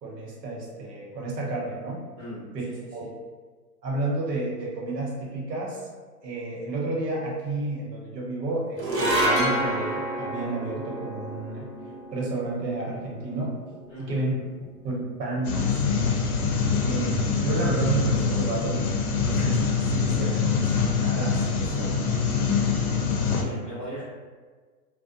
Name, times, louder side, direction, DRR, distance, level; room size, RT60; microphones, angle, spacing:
voice 1, 0.0-2.0 2.9-3.1 3.8-5.8 6.2-11.7 12.1-13.5 14.0-14.3 14.6-15.7 16.8-18.8 19.2-22.1, right 2 dB, 90° right, -3 dB, 1.0 m, -31 dB
voice 2, 2.2-3.1 13.9-14.3 23.2-24.0, equal, 5° left, -23 dB, 0.4 m, -39 dB
sound 1, 8.8-15.3, right 1 dB, 55° right, 0.8 m, -29 dB
sound 2, 15.4-23.4, left 5 dB, 65° left, 0.6 m, -24 dB
2.6 x 2.2 x 2.5 m, 1.4 s
hypercardioid pair, 150°, 47 cm